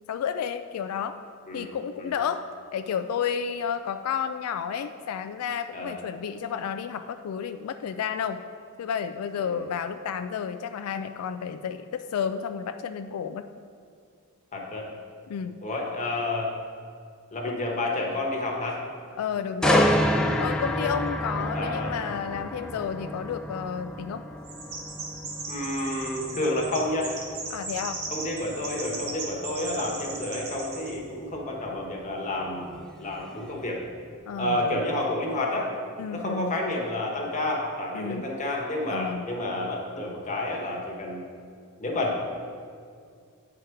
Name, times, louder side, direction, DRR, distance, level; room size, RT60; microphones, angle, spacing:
voice 1, 0.1-1.2 1.5-2.4 2.7-8.4 8.8-13.4 15.3-15.6 17.5-17.6 19.2-19.9 20.4-24.2 27.5-28.0 34.3-34.8 36.0-36.5 37.9-38.2 38.9-39.3, left 7 dB, 90° left, 10 dB, 0.3 m, -31 dB
voice 2, 5.7-6.0 9.4-9.6 14.5-14.9 15.6-16.5 17.3-18.8 21.5-21.9 25.5-27.1 28.1-33.8 34.4-35.7 36.1-41.2 41.8-42.4, left 1 dB, 35° left, -1 dB, 1.1 m, -30 dB
sound 1, 19.6-33.5 33.9-34.1, equal, 5° left, 0.4 m, -30 dB
Chirp tweet, 24.4-31.0, right 3 dB, 70° right, 1.3 m, -37 dB
8.9 x 5.0 x 4.5 m, 2.3 s
head